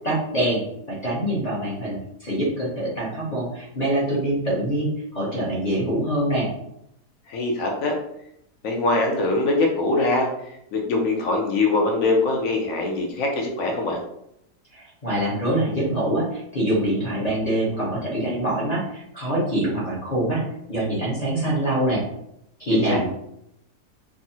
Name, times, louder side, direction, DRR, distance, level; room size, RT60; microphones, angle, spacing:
voice 1, 0.0-6.5 14.7-20.4 20.7-22.0 22.6-23.1, right 1 dB, 35° left, -7 dB, 0.6 m, -24 dB
voice 2, 7.3-7.9 8.6-14.0 22.7-23.1, left 2 dB, 70° left, 1 dB, 0.8 m, -23 dB
3.5 x 2.0 x 2.7 m, 0.78 s
omnidirectional pair, 1.7 m